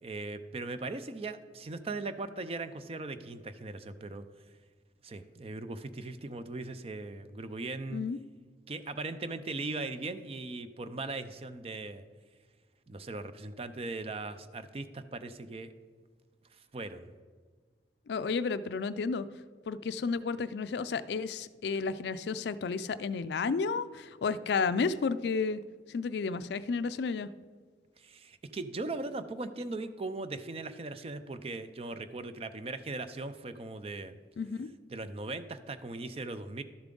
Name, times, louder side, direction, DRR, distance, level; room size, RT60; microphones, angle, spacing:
voice 1, 0.0-4.3 5.0-8.0 8.7-12.0 12.9-15.7 16.5-17.1 28.0-34.2 34.9-36.6, right 3 dB, 35° right, 11 dB, 0.4 m, -39 dB
voice 2, 18.1-19.3 19.7-25.6 25.9-27.3 34.4-34.7, left 5 dB, 70° left, 14 dB, 0.4 m, -32 dB
12.0 x 7.0 x 3.8 m, 1.5 s
head